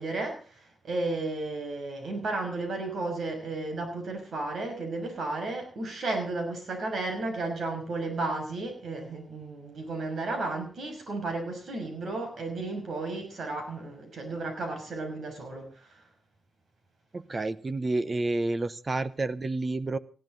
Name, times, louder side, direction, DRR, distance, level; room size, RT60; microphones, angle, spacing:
voice 1, 0.0-16.0, right 2 dB, 65° right, 5 dB, 6.2 m, -33 dB
voice 2, 17.1-20.0, right 2 dB, 25° right, 15 dB, 0.9 m, -29 dB
20.0 x 15.5 x 4.0 m, 0.38 s
wide cardioid pair, 170°, 0 cm